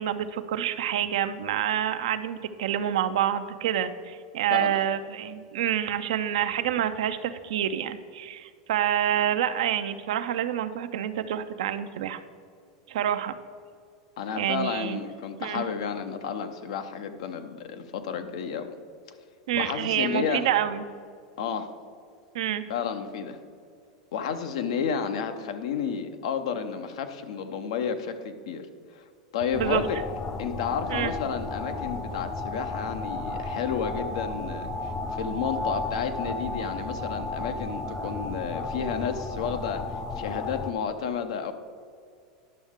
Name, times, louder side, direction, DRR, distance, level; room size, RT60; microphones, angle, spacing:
voice 1, 0.0-12.2 12.9-13.4 14.4-15.0 15.4-15.7 19.5-20.8 22.3-22.7 29.5-29.8 30.9-31.1, right 10 dB, 75° right, 10 dB, 0.5 m, -27 dB
voice 2, 14.2-18.7 19.6-20.5 21.4-21.7 22.7-23.4 24.1-28.7 28.9-29.0 29.3-30.0 30.4-39.8 40.2-41.5, left 7 dB, 75° left, 8 dB, 0.7 m, -31 dB
sound 1, 29.5-40.7, left 2 dB, 25° left, 0.5 m, -33 dB
10.5 x 6.3 x 3.6 m, 2.2 s
hypercardioid pair, 105°, 3 cm